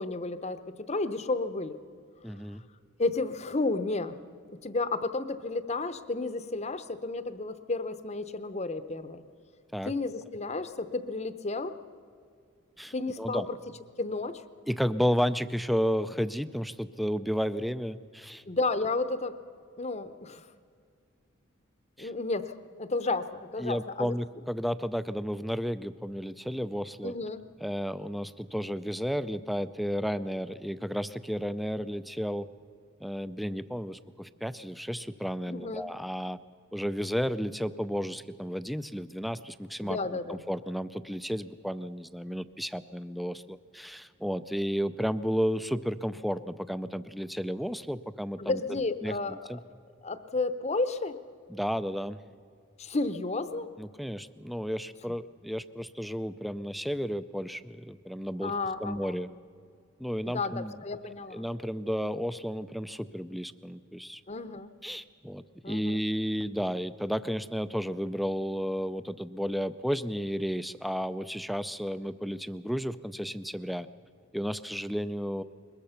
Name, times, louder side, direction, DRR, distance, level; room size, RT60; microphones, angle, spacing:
voice 1, 0.0-1.8 3.0-4.2 4.5-9.2 9.8-11.7 12.9-13.6 14.0-14.4 18.5-19.4 19.8-20.5 22.0-24.1 27.0-27.4 35.5-35.9 39.8-40.4 48.4-49.4 50.0-51.2 52.8-53.7 58.4-59.2 60.2-61.5 64.3-64.7 65.6-66.0, left 3 dB, 30° left, 12 dB, 0.8 m, -32 dB
voice 2, 2.2-2.6 9.7-9.9 12.8-13.5 14.7-18.4 22.0-22.1 23.6-27.1 27.6-32.5 33.0-36.4 36.7-48.6 49.0-49.6 51.5-52.2 53.8-58.5 58.8-59.3 60.0-60.8 61.3-64.2 64.8-73.9 74.3-75.4, equal, ahead, 13 dB, 0.4 m, -32 dB
22.0 x 20.5 x 5.7 m, 2.3 s
head